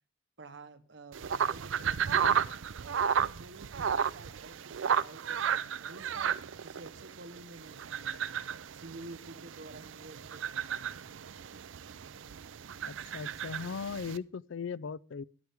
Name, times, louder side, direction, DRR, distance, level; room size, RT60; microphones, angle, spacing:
voice 1, 0.4-2.5 2.8-8.3 8.7-11.1, right 2 dB, 65° right, 1.0 m, -50 dB
sound 1, 1.1-14.2, right 7 dB, 85° right, 0.5 m, -33 dB
voice 2, 12.8-15.2, left 5 dB, 85° left, 0.4 m, -38 dB
12.5 x 11.5 x 3.5 m
head